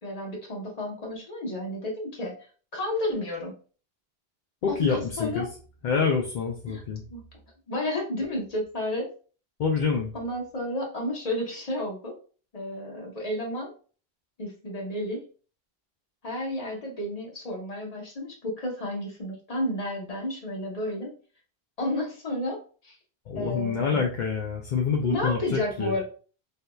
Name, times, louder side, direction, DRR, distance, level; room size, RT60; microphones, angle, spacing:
voice 1, 0.0-2.3 2.7-3.6 4.7-5.4 6.7-6.8 7.1-7.2 7.7-9.1 10.1-12.1 12.5-13.7 14.4-15.2 16.2-21.2 21.8-23.0 23.3-24.0 25.1-26.0, left 1 dB, 40° left, -1 dB, 1.0 m, -31 dB
voice 2, 4.6-5.5 5.8-7.0 9.6-10.1 23.3-26.0, left 5 dB, 55° left, 1 dB, 0.6 m, -27 dB
3.5 x 2.7 x 2.2 m, 0.39 s
omnidirectional pair, 1.1 m